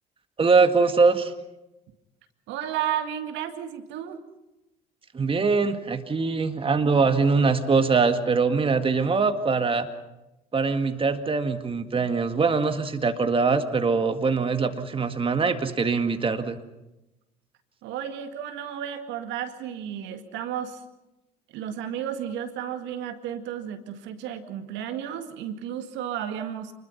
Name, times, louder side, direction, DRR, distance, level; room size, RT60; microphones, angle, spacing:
voice 1, 0.4-1.3 5.1-9.9 10.5-16.6, right 4 dB, 25° right, 8 dB, 1.9 m, -22 dB
voice 2, 2.5-4.2 17.8-20.8 21.5-26.7, right 9 dB, 65° right, 8 dB, 2.0 m, -33 dB
28.5 x 21.0 x 5.7 m, 0.97 s
hypercardioid pair, 60°, 20 cm